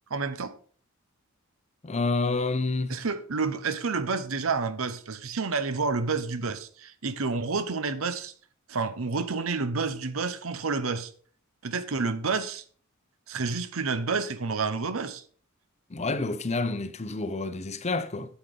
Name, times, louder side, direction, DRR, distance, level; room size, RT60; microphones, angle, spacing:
voice 1, 0.1-0.5 2.9-8.3 8.7-11.1 11.6-12.6 13.3-15.2, right 4 dB, 70° right, 0.9 m, -29 dB
voice 2, 1.8-3.0 15.9-18.4, left 3 dB, 30° left, 0.7 m, -29 dB
8.5 x 8.1 x 3.8 m
head